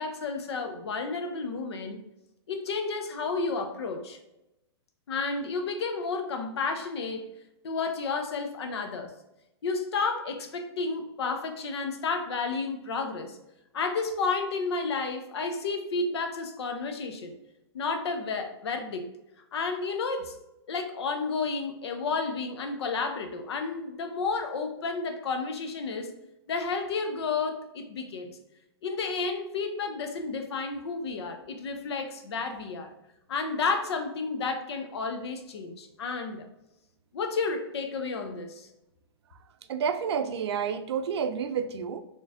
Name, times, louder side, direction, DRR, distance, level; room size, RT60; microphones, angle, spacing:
voice 1, 0.0-2.0 2.5-4.2 5.1-7.3 7.6-9.1 9.6-13.4 13.7-17.3 17.7-19.1 19.5-20.4 20.7-26.1 26.5-28.3 28.8-32.9 33.3-36.5 37.1-38.7, left 4 dB, 75° left, 6 dB, 0.8 m, -31 dB
voice 2, 39.7-42.0, right 7 dB, 75° right, 10 dB, 0.5 m, -29 dB
4.0 x 3.2 x 2.5 m, 0.90 s
hypercardioid pair, 140°, 14 cm